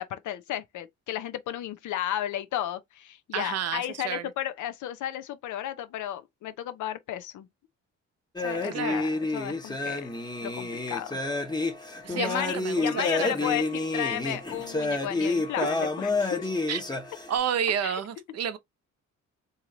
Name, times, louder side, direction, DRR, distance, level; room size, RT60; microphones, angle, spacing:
voice 1, 0.0-7.5 8.4-10.1 10.4-11.2 12.1-16.5 17.8-18.0, left 11 dB, 75° left, 0.7 m, -33 dB
voice 2, 3.3-4.3 8.7-9.1 12.0-13.5 15.2-15.3 16.7-16.8 17.3-18.6, right 8 dB, 55° right, 0.7 m, -31 dB
sound 1, 8.4-17.4, left 2 dB, 15° left, 0.9 m, -29 dB
3.1 x 2.9 x 3.7 m
cardioid pair, 90°, 30 cm